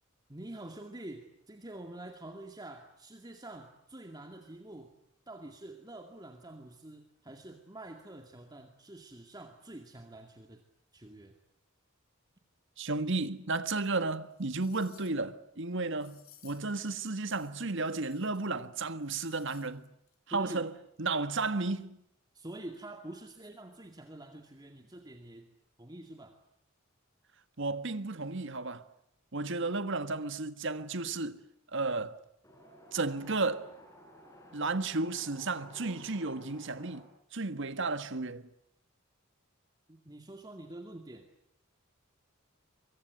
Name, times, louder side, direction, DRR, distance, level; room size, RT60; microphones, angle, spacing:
voice 1, 0.3-4.9 5.3-10.6 10.9-11.4 20.3-20.7 22.3-25.5 25.8-26.4 39.9-41.3, right 1 dB, 20° right, 2.3 m, -47 dB
voice 2, 12.8-19.9 20.3-20.7 21.0-22.0 27.6-28.8 29.3-31.4 31.7-32.2 32.9-33.7 34.5-38.4, right 3 dB, 60° right, 1.7 m, -33 dB
sound 1, 13.8-13.9 14.3-15.3 15.9-16.8 17.2-18.6 18.9-19.7 20.1-20.2, left 11 dB, 90° left, 4.9 m, -60 dB
Wind, 32.4-37.0, equal, 15° left, 7.8 m, -54 dB
24.0 x 23.5 x 9.3 m
head